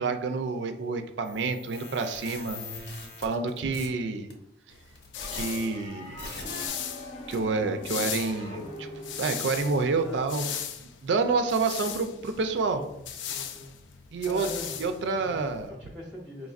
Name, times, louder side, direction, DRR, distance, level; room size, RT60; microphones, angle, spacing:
voice 1, 0.0-4.3 5.3-6.2 7.3-8.9 9.2-10.5 11.0-12.8 14.1-14.5 14.8-15.7, right 4 dB, 75° right, 7 dB, 0.4 m, -28 dB
sound 1, 1.2-3.9 4.3-4.4 5.0-5.4 5.8-5.9 6.2-6.7, left 3 dB, 65° left, 0.9 m, -41 dB
sound 2, 4.7-15.7, left 8 dB, 90° left, 0.4 m, -38 dB
sound 3, 5.1-9.9, left 1 dB, 40° left, 0.7 m, -43 dB
voice 2, 10.0-10.3 12.7-13.7 14.2-16.5, left 1 dB, ahead, -4 dB, 0.6 m, -43 dB
5.1 x 3.1 x 2.4 m, 0.81 s
head